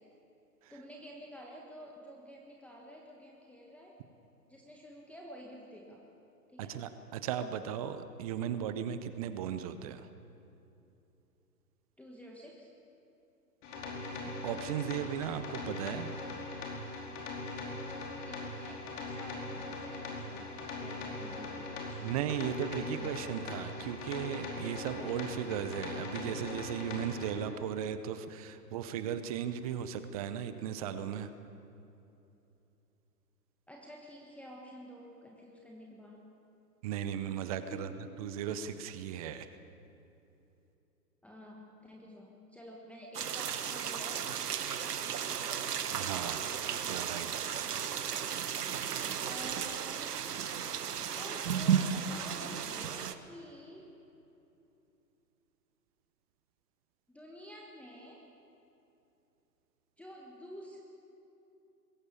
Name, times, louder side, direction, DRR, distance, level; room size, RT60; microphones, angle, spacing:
voice 1, 0.7-3.9 4.5-6.0 6.5-6.8 12.0-12.7 18.2-22.0 22.8-23.2 33.7-36.3 37.7-37.9 41.2-44.2 49.2-50.1 51.2-53.9 57.1-58.2 60.0-60.8, equal, 5° left, -2 dB, 1.4 m, -50 dB
voice 2, 6.6-10.1 14.4-16.1 22.0-31.3 36.8-37.9 38.2-39.5 45.9-46.5 46.9-47.3, right 9 dB, 25° right, 11 dB, 0.7 m, -36 dB
sound 1, 13.6-27.3, left 2 dB, 50° left, 4.9 m, -41 dB
sound 2, 43.1-53.1, right 8 dB, 65° right, 1.4 m, -34 dB
21.0 x 16.0 x 8.4 m, 2.9 s
hypercardioid pair, 130°, 49 cm